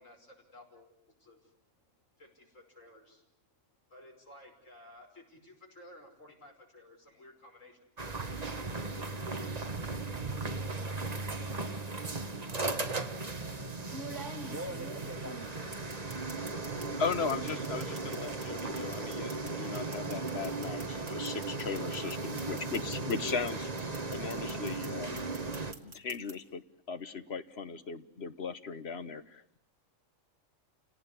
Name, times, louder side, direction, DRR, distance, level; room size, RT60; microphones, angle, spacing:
voice 1, 0.0-1.6 2.2-3.4 3.9-7.9 8.1-9.8 10.3-11.8, left 1 dB, 70° left, 1 dB, 6.0 m, -56 dB
sound 1, 8.0-25.7, right 3 dB, 30° right, 1.4 m, -37 dB
sound 2, 10.8-11.1 12.3-12.4 13.9-16.9 17.1-23.5 23.8-24.9 25.2-26.3, right 2 dB, 65° right, 3.2 m, -46 dB
voice 2, 13.4-15.5 16.7-17.0 22.5-22.6, equal, 10° right, 2 dB, 3.1 m, -47 dB
voice 3, 17.0-23.7 24.1-25.3 25.8-29.6, left 5 dB, 50° left, 11 dB, 1.4 m, -37 dB
29.5 x 18.0 x 9.7 m, 0.77 s
omnidirectional pair, 1.4 m